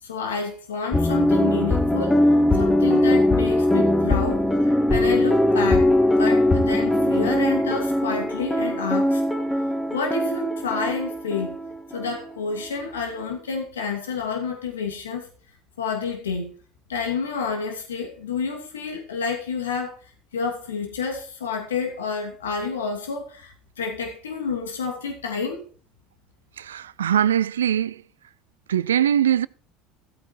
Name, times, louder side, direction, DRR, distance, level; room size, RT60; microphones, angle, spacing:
voice 1, 0.0-5.9 6.2-9.2 9.9-11.6 11.9-15.3 15.8-16.5 16.9-20.0 20.3-25.6, left 5 dB, 90° left, 2.8 m, -29 dB
sound 1, 0.9-12.3 12.6-12.7, left 1 dB, 10° left, 2.3 m, -21 dB
voice 2, 26.6-27.9 28.7-29.5, right 10 dB, 85° right, 0.5 m, -21 dB
15.5 x 8.4 x 4.4 m
hypercardioid pair, 75°, 0 cm